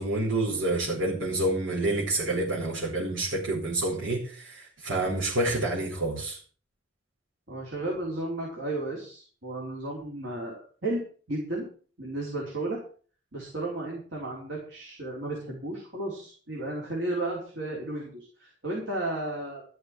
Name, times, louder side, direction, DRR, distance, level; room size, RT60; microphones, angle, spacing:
voice 1, 0.0-6.4, right 2 dB, 85° right, -6 dB, 4.9 m, -28 dB
voice 2, 7.5-11.7 12.0-12.8 13.3-19.6, right 2 dB, 65° right, -3 dB, 5.0 m, -33 dB
14.5 x 6.3 x 7.9 m, 0.42 s
head